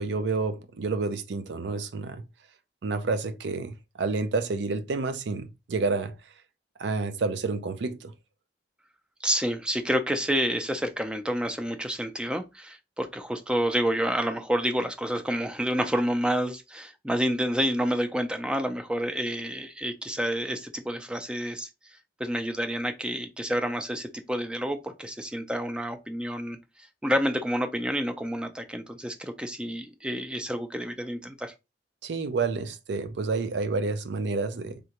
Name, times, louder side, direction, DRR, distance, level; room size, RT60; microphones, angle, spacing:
voice 1, 0.0-2.2 2.8-6.2 6.8-8.1 32.0-34.8, right 3 dB, 70° right, 0.4 m, -29 dB
voice 2, 9.2-21.7 22.2-26.6 27.0-31.5, equal, 5° right, 0.4 m, -29 dB
3.6 x 2.2 x 2.8 m
head